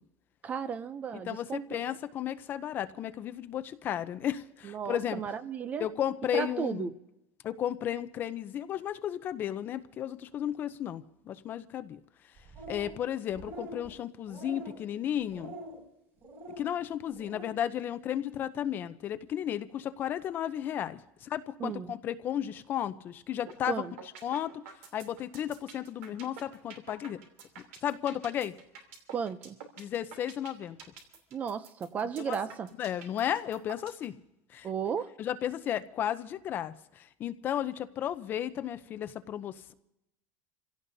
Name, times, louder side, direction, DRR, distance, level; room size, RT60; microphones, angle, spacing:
voice 1, 0.4-1.7 4.6-5.9 6.3-6.9 21.6-21.9 23.7-23.9 29.1-29.6 31.3-32.7 34.6-35.1, right 7 dB, 20° right, 0.5 m, -34 dB
voice 2, 1.3-5.2 5.8-6.9 7.4-12.0 12.7-15.6 16.6-23.8 24.2-24.6 24.9-27.2 27.8-28.5 29.8-30.8 32.2-32.4 32.8-34.1 34.5-34.7 35.2-39.7, left 10 dB, 30° left, 0.6 m, -34 dB
sound 1, 12.4-13.0 13.3-13.9 14.3-14.8 15.3-15.8 16.2-16.7 17.1-17.5, right 1 dB, 40° right, 5.6 m, -44 dB
sound 2, 23.5-23.7 24.0-34.0, right 6 dB, 85° right, 3.0 m, -47 dB
28.0 x 16.5 x 2.7 m
cardioid pair, 170°, 7 cm